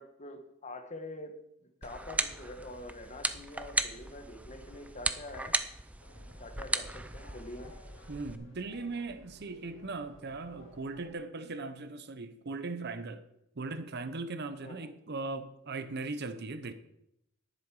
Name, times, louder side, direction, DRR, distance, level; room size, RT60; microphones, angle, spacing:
voice 1, 0.0-1.3 1.8-5.5 6.4-7.7 14.6-14.9, left 1 dB, 35° left, 1.4 m, -45 dB
sound 1, 1.8-8.4, right 2 dB, 5° right, 0.5 m, -36 dB
sound 2, 6.0-11.1, left 1 dB, 80° left, 4.1 m, -56 dB
voice 2, 8.1-13.2 13.6-16.7, right 3 dB, 50° right, 0.8 m, -39 dB
11.0 x 10.5 x 4.8 m
head